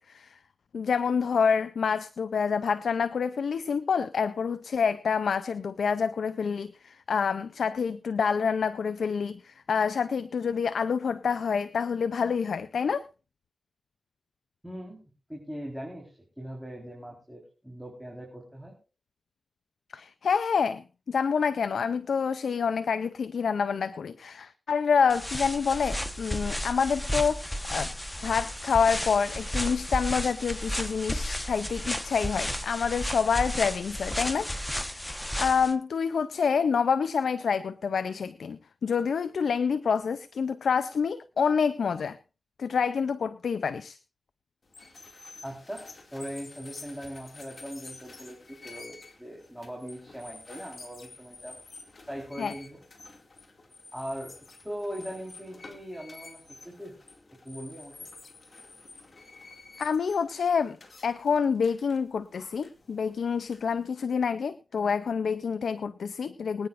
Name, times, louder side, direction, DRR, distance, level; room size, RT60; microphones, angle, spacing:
voice 1, 0.7-13.1 19.9-27.9 28.2-35.0 35.4-42.2 42.6-44.0 52.4-52.5 59.8-60.8 61.0-66.7, left 6 dB, 85° left, 12 dB, 0.5 m, -27 dB
voice 2, 14.6-15.0 15.3-18.7 45.4-45.8 46.1-51.6 52.1-52.8 53.9-56.9 57.4-58.1, equal, 5° right, -1 dB, 4.1 m, -40 dB
sound 1, 25.1-35.7, equal, 10° left, 1.2 m, -33 dB
sound 2, 44.6-63.9, left 3 dB, 55° left, 2.3 m, -49 dB
24.0 x 9.4 x 2.5 m, 0.32 s
cardioid pair, 50°, 0 cm